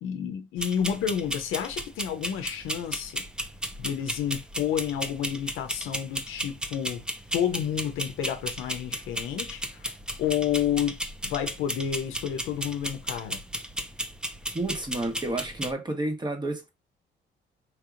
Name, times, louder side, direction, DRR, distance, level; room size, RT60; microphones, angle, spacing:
voice 1, 0.0-3.2 3.8-7.1 7.3-9.9 10.2-11.0 11.2-13.4, left 9 dB, 90° left, 0.6 m, -30 dB
sound 1, 0.6-15.7, equal, 5° right, 0.5 m, -35 dB
voice 2, 14.5-16.7, right 2 dB, 20° right, 1.2 m, -30 dB
4.5 x 2.8 x 2.5 m
cardioid pair, 90°, 20 cm